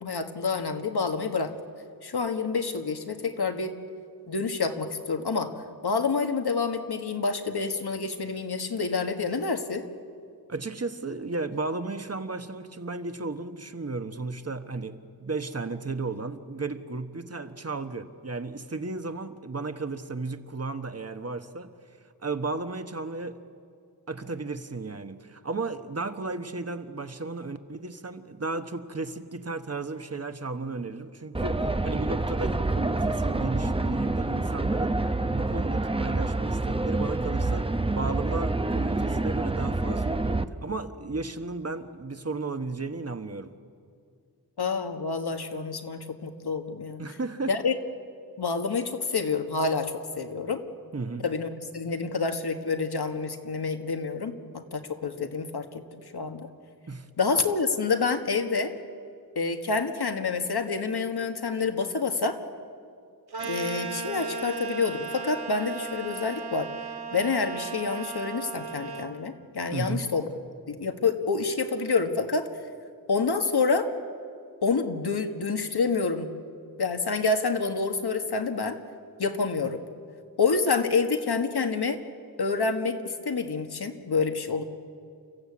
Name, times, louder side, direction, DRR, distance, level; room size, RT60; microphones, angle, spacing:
voice 1, 0.0-1.5 2.0-3.7 4.3-5.5 5.8-9.8 44.6-47.0 47.5-47.7 48.4-50.6 51.2-55.8 56.1-56.5 57.2-58.7 59.3-62.4 63.4-66.7 67.1-70.3 70.7-72.5 73.1-73.9 74.6-76.3 76.8-78.8 79.2-79.8 80.4-82.0 82.4-84.6, left 4 dB, 75° left, 6 dB, 1.7 m, -28 dB
voice 2, 10.5-21.7 22.2-23.4 24.1-35.0 35.3-37.7 37.9-43.5 47.0-47.5 50.9-51.3 56.9-57.1 69.7-70.1, right 3 dB, 40° right, 8 dB, 1.2 m, -34 dB
sound 1, 31.3-40.4, right 2 dB, 15° right, 0.7 m, -27 dB
sound 2, 63.3-69.2, right 4 dB, 75° right, 1.9 m, -36 dB
30.0 x 15.0 x 8.6 m, 2.4 s
wide cardioid pair, 90°, 39 cm